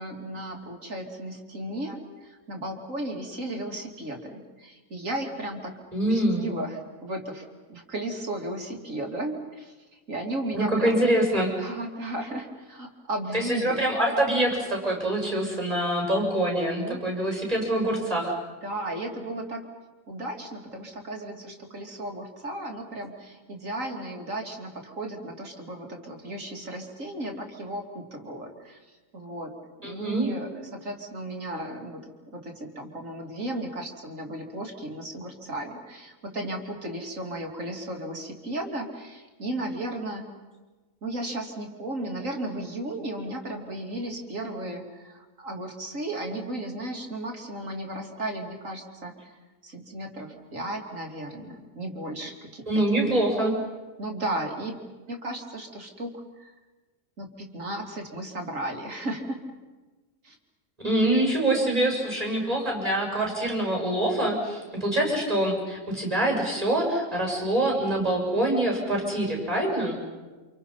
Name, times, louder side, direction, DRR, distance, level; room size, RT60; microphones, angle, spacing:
voice 1, 0.0-5.7 6.0-11.0 11.6-13.8 16.8-17.0 18.6-19.6 20.1-29.5 29.8-40.3 41.0-49.3 49.6-53.1 54.0-54.8 55.1-56.5 57.2-59.4 60.2-60.4, right 1 dB, 80° right, 2 dB, 3.3 m, -35 dB
voice 2, 5.9-6.5 10.5-11.5 13.3-18.3 29.8-30.3 52.7-53.5 60.8-70.0, right 1 dB, 30° right, -1 dB, 6.9 m, -25 dB
29.5 x 27.5 x 5.6 m, 1.2 s
omnidirectional pair, 1.3 m